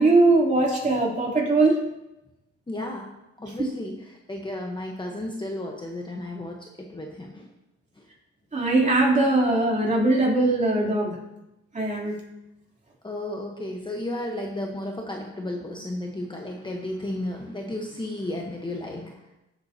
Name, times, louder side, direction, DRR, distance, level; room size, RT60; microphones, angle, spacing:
voice 1, 0.0-1.8 8.5-11.2 11.7-12.2, right 2 dB, 25° right, -3 dB, 3.4 m, -20 dB
voice 2, 2.7-7.5 13.0-19.2, left 1 dB, 15° left, 1 dB, 1.1 m, -33 dB
17.0 x 7.7 x 2.9 m, 0.94 s
cardioid pair, 90°, 30 cm